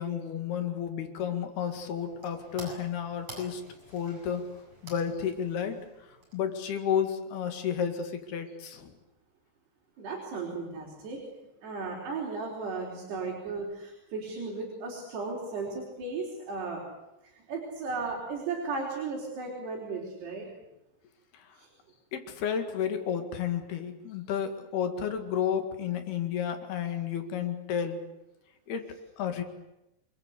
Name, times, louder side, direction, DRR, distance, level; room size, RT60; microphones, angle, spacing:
voice 1, 0.0-3.6 3.9-4.4 4.8-5.8 6.3-9.0 21.3-21.6 22.1-28.0 28.7-29.4, left 8 dB, 70° left, 7 dB, 4.0 m, -32 dB
sound 1, 1.4-6.8, right 1 dB, 30° right, 8.8 m, -50 dB
voice 2, 10.0-11.2 11.6-16.8 17.2-20.5 21.5-21.7, right 4 dB, 75° right, -2 dB, 6.4 m, -35 dB
28.5 x 21.5 x 8.3 m, 0.93 s
omnidirectional pair, 4.8 m